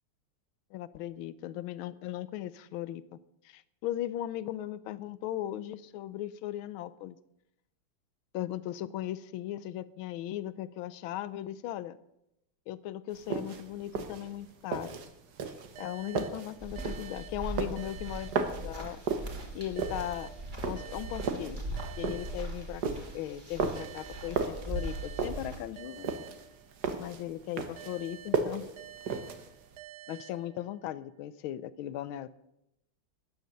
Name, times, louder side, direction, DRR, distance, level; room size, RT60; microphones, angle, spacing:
voice 1, 0.7-3.2 3.4-7.2 8.3-12.0 12.7-15.0 15.8-19.0 19.5-20.3 20.6-21.6 22.0-22.8 23.1-26.1 27.0-28.7 30.1-32.3, left 13 dB, 75° left, 17 dB, 1.5 m, -38 dB
sound 1, 13.1-29.8, right 5 dB, 55° right, 1.6 m, -35 dB
sound 2, 15.8-19.1 19.8-23.1 23.8-27.1 27.8-31.1, right 9 dB, 75° right, 1.7 m, -50 dB
sound 3, 16.6-25.6, right 1 dB, 20° right, 2.4 m, -40 dB
13.5 x 9.6 x 6.5 m, 0.83 s
omnidirectional pair, 2.3 m